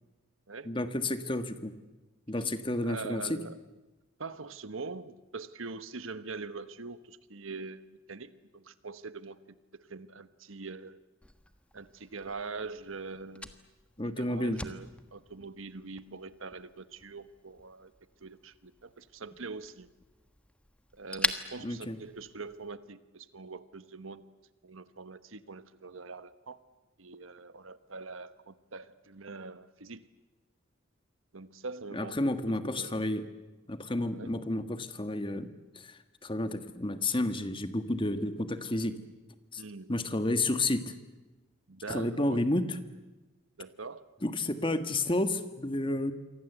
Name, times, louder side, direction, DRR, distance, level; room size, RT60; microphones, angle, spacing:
voice 1, 0.6-1.8 2.3-3.4 14.0-14.6 21.6-22.0 31.9-33.2 33.7-39.0 39.5-39.6 39.9-40.9 41.9-42.8 44.2-46.1, left 2 dB, 25° left, 9 dB, 1.6 m, -31 dB
voice 2, 2.8-3.6 4.2-9.4 9.9-11.0 11.7-13.5 14.0-17.9 18.2-19.9 20.9-24.2 24.6-26.6 27.0-30.0 31.3-32.3 32.8-33.0 34.1-34.4 39.6-39.9 41.7-42.5 43.6-44.1, right 4 dB, 80° right, 13 dB, 1.2 m, -43 dB
Fire, 11.2-22.7, left 1 dB, 5° left, 1.3 m, -43 dB
28.0 x 24.0 x 8.2 m, 1.1 s
head